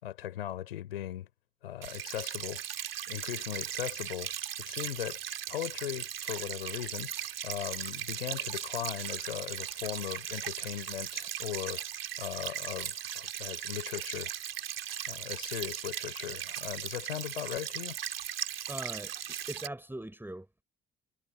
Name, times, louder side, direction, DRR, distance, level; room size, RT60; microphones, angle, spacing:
voice 1, 0.0-1.3 1.6-2.6 3.1-4.3 4.6-5.2 5.5-11.8 12.2-14.3 15.1-18.0, left 12 dB, 75° left, 4.3 m, -38 dB
sound 1, 1.8-19.7, right 10 dB, 80° right, 3.9 m, -38 dB
voice 2, 18.7-20.6, right 1 dB, 5° right, 6.0 m, -41 dB
figure-of-eight pair, 45°, 29 cm